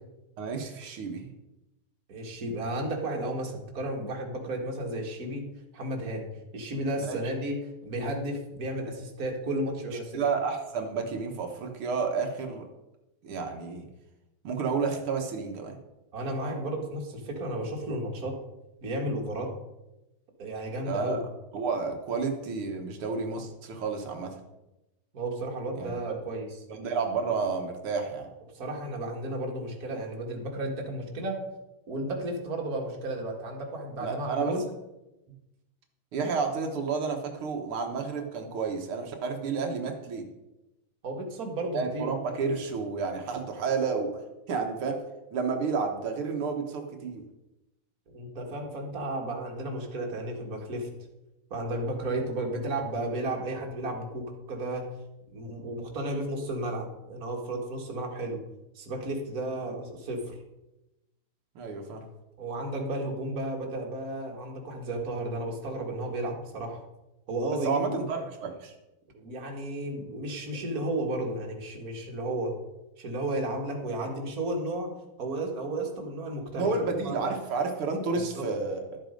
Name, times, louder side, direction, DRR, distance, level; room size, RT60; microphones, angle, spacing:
voice 1, 0.4-1.3 7.0-7.2 10.1-12.7 13.2-13.9 14.4-15.8 20.8-21.2 21.5-24.3 25.8-26.1 26.7-28.3 34.0-34.6 36.1-40.3 41.7-44.2 44.5-45.0 45.3-47.2 61.6-62.0 67.5-68.7 76.6-79.0, right 4 dB, 85° right, 3 dB, 2.1 m, -31 dB
voice 2, 2.1-5.5 5.7-6.3 6.5-10.2 16.1-18.3 18.8-19.5 20.4-21.2 25.1-26.5 28.5-31.4 31.9-34.7 41.0-42.1 48.1-50.9 51.5-54.9 55.3-58.4 58.8-60.3 62.4-66.8 67.3-68.0 69.1-72.5 73.0-74.9 75.2-77.3 78.1-78.5, right 1 dB, 45° right, 0 dB, 2.3 m, -33 dB
13.0 x 7.7 x 5.2 m, 0.97 s
omnidirectional pair, 2.3 m